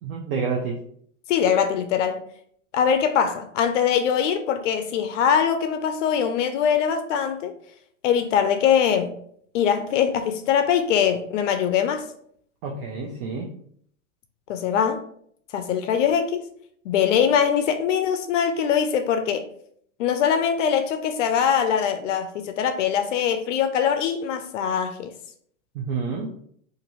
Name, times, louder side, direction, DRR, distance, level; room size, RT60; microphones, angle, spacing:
voice 1, 0.0-0.8 12.6-13.5 25.7-26.3, right 5 dB, 50° right, 0.5 m, -29 dB
voice 2, 1.3-2.2 2.7-7.5 8.0-9.1 9.5-12.1 14.5-15.0 15.5-16.4 16.9-19.5 20.0-25.1, left 8 dB, 70° left, 0.5 m, -22 dB
2.6 x 2.5 x 2.9 m
hypercardioid pair, 130°, 38 cm